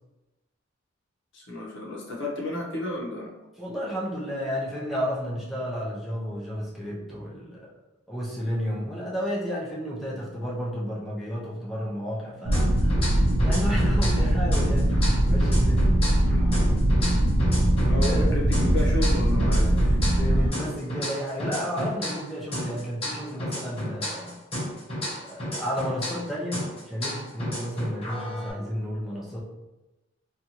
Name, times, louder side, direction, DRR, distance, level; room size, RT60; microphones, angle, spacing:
voice 1, 1.3-3.3 16.3-16.8 17.8-20.0, left 1 dB, 65° left, -3 dB, 0.7 m, -33 dB
voice 2, 3.6-7.7 8.1-13.0 13.4-14.9 15.2-16.0 17.9-18.3 20.0-24.3 25.2-29.4, equal, ahead, -7 dB, 0.5 m, -32 dB
sound 1, 12.5-14.3 14.5-18.3 18.5-22.3 22.5-26.3 26.5-28.5, left 1 dB, 30° left, 0.8 m, -33 dB
sound 2, 12.5-20.5, right 1 dB, 55° right, 0.4 m, -21 dB
2.7 x 2.3 x 2.8 m, 1.0 s
head